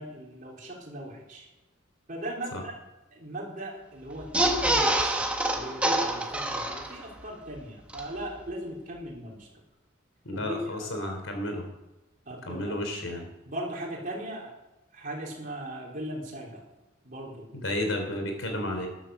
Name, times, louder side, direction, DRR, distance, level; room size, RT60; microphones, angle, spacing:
voice 1, 0.0-1.5 2.1-2.7 3.1-9.5 10.3-10.9 12.3-12.8 13.4-14.5 14.9-16.6 17.0-17.5, right 1 dB, 40° right, -2 dB, 4.0 m, -38 dB
sound 1, 4.2-7.2 7.6-7.7 7.9-8.0, right 1 dB, 5° right, 1.3 m, -26 dB
voice 2, 10.2-11.7 12.5-13.3 17.5-18.9, left 1 dB, 80° left, 4 dB, 3.6 m, -32 dB
13.5 x 11.0 x 6.7 m, 1.0 s
head